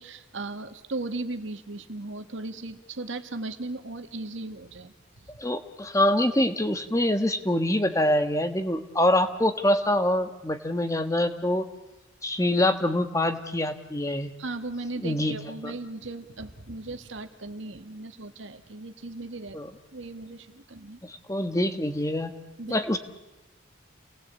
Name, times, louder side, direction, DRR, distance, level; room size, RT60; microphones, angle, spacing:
voice 1, 0.0-4.9 14.4-19.6 19.9-21.0 22.6-22.8, right 2 dB, 75° right, 8 dB, 1.9 m, -37 dB
voice 2, 5.4-11.6 12.2-14.3 15.0-15.3 15.6-15.7 19.5-19.7 21.0-22.3 22.7-23.0, left 1 dB, 15° left, 8 dB, 1.4 m, -25 dB
29.5 x 19.5 x 8.3 m, 1.0 s
head